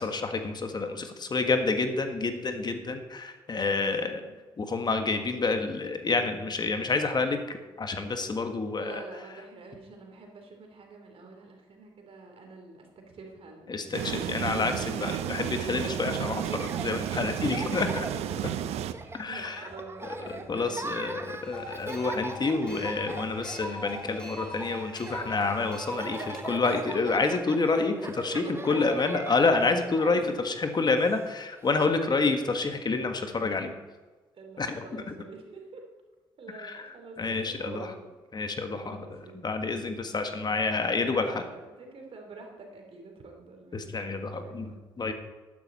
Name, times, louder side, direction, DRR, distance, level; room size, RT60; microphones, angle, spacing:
voice 1, 0.0-4.2 4.6-9.0 13.7-18.1 19.1-19.7 20.5-21.2 21.5-33.7 34.6-35.0 36.6-36.8 37.2-37.9 38.3-39.0 39.4-41.4 43.7-45.1, left 3 dB, 40° left, 7 dB, 1.4 m, -28 dB
voice 2, 3.9-4.4 8.8-14.0 17.4-18.7 19.0-22.2 28.3-29.2 30.0-30.4 34.3-35.8 36.4-38.1 38.8-40.0 40.2-40.4 40.9-44.8, right 3 dB, 60° right, 2 dB, 2.9 m, -47 dB
sound 1, 13.9-18.9, right 11 dB, 75° right, 0.6 m, -32 dB
Laughter, 15.1-31.9, right 2 dB, 20° right, 1.0 m, -42 dB
sound 2, 21.4-26.4, left 1 dB, 10° left, 3.1 m, -41 dB
12.0 x 9.9 x 4.2 m, 1.3 s
supercardioid pair, 55°, 11 cm